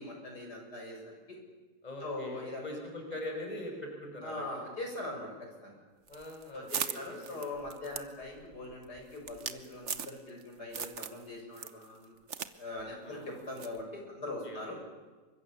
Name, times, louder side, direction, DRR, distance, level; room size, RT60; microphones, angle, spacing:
voice 1, 0.0-1.4 2.0-2.8 4.2-5.8 6.5-12.2 12.5-14.8, left 2 dB, 65° left, 1 dB, 7.8 m, -42 dB
voice 2, 1.8-4.6 6.1-7.4 13.0-13.4 14.4-14.6, left 1 dB, 20° left, 3 dB, 5.1 m, -42 dB
sound 1, 6.1-10.4 10.7-11.2 11.5-12.5 12.8-12.9 13.6-13.8, right 7 dB, 45° right, 1.3 m, -39 dB
29.0 x 24.5 x 7.2 m, 1.3 s
omnidirectional pair, 1.9 m